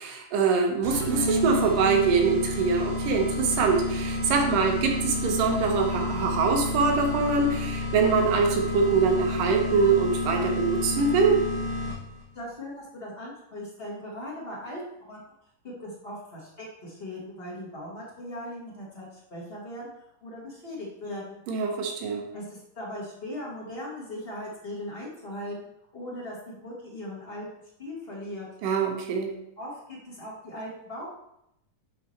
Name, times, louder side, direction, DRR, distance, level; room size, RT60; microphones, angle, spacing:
voice 1, 0.0-11.4 21.5-22.2 28.6-29.4, right 5 dB, 75° right, 2 dB, 2.5 m, -24 dB
sound 1, 0.8-12.2, left 2 dB, 45° right, 2.4 m, -30 dB
voice 2, 12.3-14.8 15.1-15.2 15.6-19.9 20.2-21.4 22.3-27.5 27.8-28.5 29.6-31.1, left 1 dB, 90° left, -5 dB, 0.5 m, -39 dB
10.5 x 4.1 x 3.2 m, 0.81 s
omnidirectional pair, 4.0 m